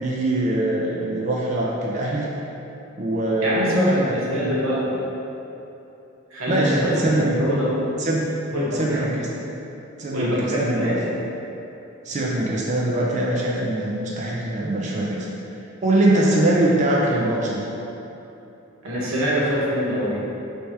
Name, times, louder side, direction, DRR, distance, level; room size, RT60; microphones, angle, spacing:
voice 1, 0.0-2.3 3.0-4.5 6.5-7.4 8.0-8.3 8.7-9.3 10.0-11.0 12.0-15.3 15.8-17.7, right 1 dB, 35° right, -4 dB, 0.4 m, -23 dB
voice 2, 3.4-4.8 6.3-7.9 8.5-9.0 10.1-11.1 18.8-20.3, equal, 75° right, -6 dB, 1.1 m, -24 dB
3.3 x 2.8 x 4.5 m, 3.0 s
head